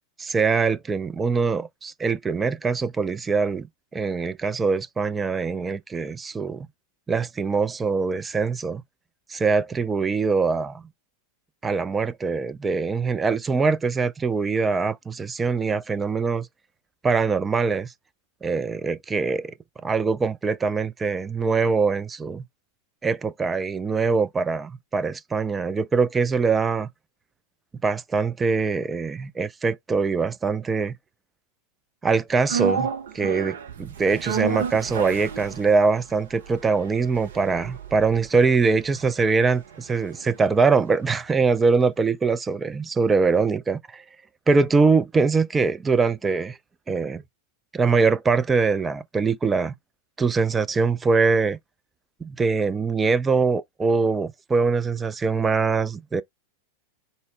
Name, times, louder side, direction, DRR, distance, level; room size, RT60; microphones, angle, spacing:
voice 1, 0.2-3.7 3.9-6.7 7.1-8.8 9.3-10.8 11.6-16.5 17.0-17.9 18.4-19.5 19.8-22.4 23.0-26.9 27.8-31.0 32.0-44.0 44.5-46.6 46.9-47.2 47.7-49.7 50.2-51.6 52.2-56.2, right 4 dB, 15° right, 0.3 m, -23 dB
sound 1, 32.5-40.8 41.1-41.2, right 6 dB, 60° right, 0.6 m, -32 dB
4.0 x 2.0 x 3.5 m
figure-of-eight pair, 90°, 0 cm